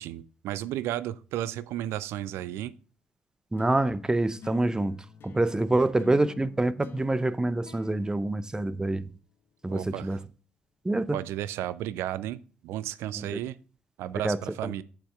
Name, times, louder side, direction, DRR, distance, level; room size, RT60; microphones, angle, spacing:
voice 1, 0.0-2.7 5.8-5.9 9.7-10.2 11.1-13.6 14.0-14.8, right 13 dB, 60° right, 0.5 m, -33 dB
voice 2, 3.5-5.0 5.2-9.1 9.6-10.2 10.8-11.2 13.2-13.4 14.2-14.4 14.6-14.7, right 2 dB, 15° right, 0.7 m, -26 dB
sound 1, 3.6-9.2, left 5 dB, 50° left, 1.0 m, -49 dB
8.8 x 7.0 x 3.5 m
figure-of-eight pair, 45°, 5 cm